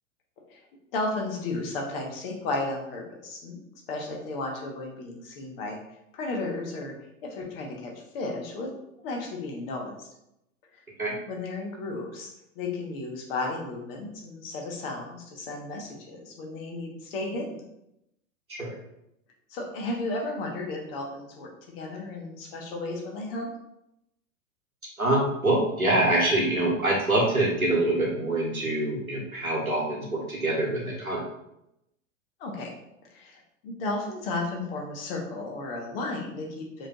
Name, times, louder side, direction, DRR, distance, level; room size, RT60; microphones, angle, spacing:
voice 1, 0.9-3.6 3.9-5.8 6.1-6.9 7.2-8.7 9.0-10.1 11.0-12.3 12.5-17.6 19.5-21.5 21.8-23.5 32.4-32.7 33.1-36.9, left 2 dB, 45° left, 0 dB, 1.2 m, -34 dB
voice 2, 25.0-31.2, right 1 dB, 90° right, -4 dB, 1.3 m, -25 dB
5.3 x 3.3 x 2.4 m, 0.83 s
figure-of-eight pair, 95°, 41 cm